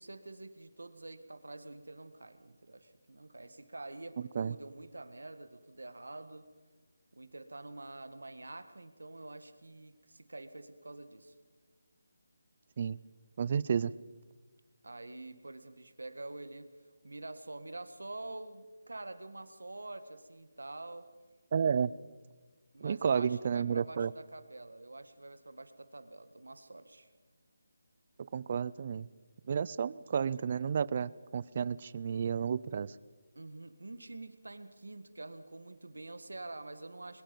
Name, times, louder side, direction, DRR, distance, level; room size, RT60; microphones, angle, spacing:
voice 1, 0.0-6.5 7.1-11.4 14.8-21.1 22.7-27.1 33.4-37.2, right 2 dB, 85° right, 11 dB, 1.7 m, -47 dB
voice 2, 13.4-13.9 21.5-21.9 22.8-24.1 28.3-29.1 29.5-32.9, right 7 dB, 40° right, 20 dB, 0.5 m, -31 dB
22.5 x 22.0 x 5.3 m, 1.4 s
figure-of-eight pair, 165°, 0 cm